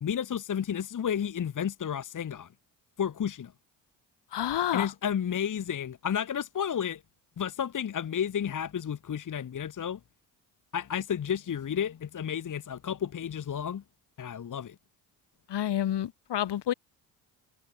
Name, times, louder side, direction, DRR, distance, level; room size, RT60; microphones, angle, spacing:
voice 1, 0.0-2.5 3.0-3.5 4.7-7.0 7.4-10.0 10.7-13.8 14.2-14.8, left 8 dB, 40° left, 1.3 m, -32 dB
voice 2, 4.3-4.9 15.5-16.7, left 11 dB, 60° left, 2.2 m, -29 dB
hypercardioid pair, 55°, 47 cm